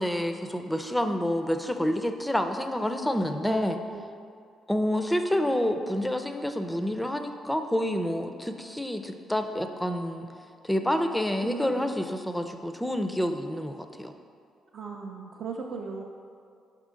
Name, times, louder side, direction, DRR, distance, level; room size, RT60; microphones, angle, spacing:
voice 1, 0.0-3.8 4.7-10.3 10.6-14.1, left 1 dB, 5° left, 6 dB, 0.4 m, -28 dB
voice 2, 11.4-11.9 14.7-16.0, right 4 dB, 60° right, -1 dB, 0.4 m, -37 dB
5.1 x 3.7 x 5.0 m, 2.3 s
cardioid pair, 90°, 0 cm